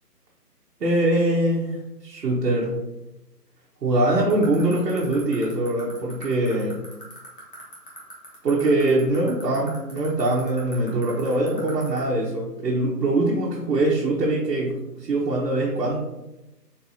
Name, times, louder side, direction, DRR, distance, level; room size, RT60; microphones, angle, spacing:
voice 1, 0.8-1.8 2.0-2.8 3.8-6.8 8.4-16.0, right 2 dB, 75° right, -4 dB, 0.9 m, -23 dB
sound 1, 4.3-12.0, left 2 dB, 35° left, 0.9 m, -41 dB
3.9 x 2.7 x 2.8 m, 0.97 s
hypercardioid pair, 170°, 49 cm